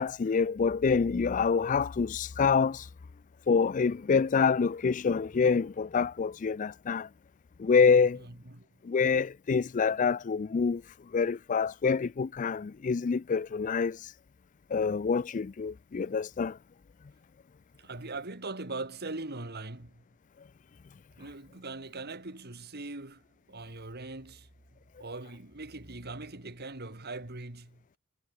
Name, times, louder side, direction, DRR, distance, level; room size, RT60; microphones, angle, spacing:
voice 1, 0.0-2.9 3.5-7.1 7.6-8.2 8.8-10.8 11.1-14.1 14.7-16.6, left 5 dB, 35° left, 0.4 m, -26 dB
voice 2, 8.2-8.7 17.8-20.0 21.2-23.2 23.5-24.5 25.0-28.0, right 2 dB, 50° right, 2.5 m, -41 dB
head